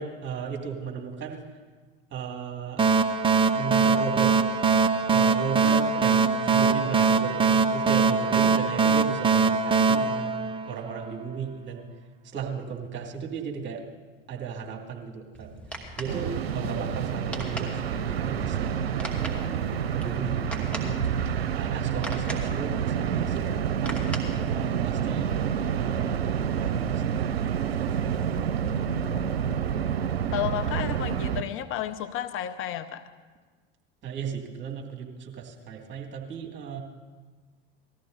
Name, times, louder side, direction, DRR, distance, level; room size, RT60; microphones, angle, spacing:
voice 1, 0.0-1.4 2.1-2.8 3.5-4.3 5.1-10.3 10.6-11.9 12.3-13.8 14.3-15.5 16.0-21.0 21.5-24.1 24.5-25.3 25.6-27.2 34.0-36.8, right 6 dB, 40° right, 2 dB, 2.6 m, -35 dB
sound 1, 2.8-11.1, right 5 dB, 15° right, 0.6 m, -22 dB
sound 2, 15.3-25.0, right 1 dB, 5° left, 2.4 m, -41 dB
sound 3, 16.1-31.4, right 8 dB, 85° right, 0.6 m, -28 dB
voice 2, 28.3-29.6 30.3-33.1, left 11 dB, 45° left, 10 dB, 0.7 m, -33 dB
19.0 x 14.0 x 4.0 m, 1.4 s
hypercardioid pair, 80°, 30 cm